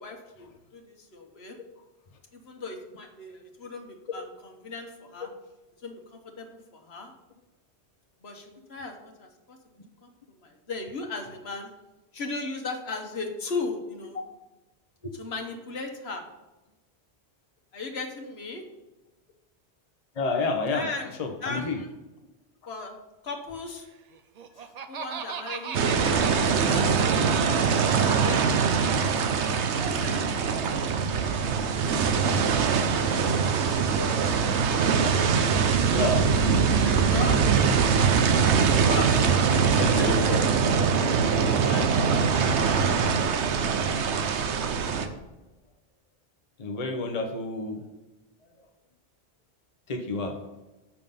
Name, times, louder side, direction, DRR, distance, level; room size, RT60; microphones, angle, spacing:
voice 1, 0.0-1.5 2.3-5.3 5.8-7.1 8.2-9.6 10.0-11.7 12.1-14.2 15.1-16.2 17.7-18.6 20.7-21.9 22.7-23.0 23.2-23.8 24.9-25.8 26.1-26.9 28.0-30.2 32.8-34.1 36.1-37.4 38.5-40.1 41.6-41.9 42.8-43.1, left 3 dB, 70° left, 3 dB, 1.4 m, -38 dB
voice 2, 20.2-20.9 21.2-21.8 35.9-36.3 39.6-40.4 46.6-47.8 49.9-50.4, left 3 dB, 40° left, 3 dB, 0.9 m, -29 dB
Laughter, 24.1-27.9, right 7 dB, 50° right, 0.5 m, -37 dB
sound 1, 25.7-45.1, right 6 dB, 90° right, 1.0 m, -23 dB
7.0 x 5.9 x 5.4 m, 1.1 s
omnidirectional pair, 1.1 m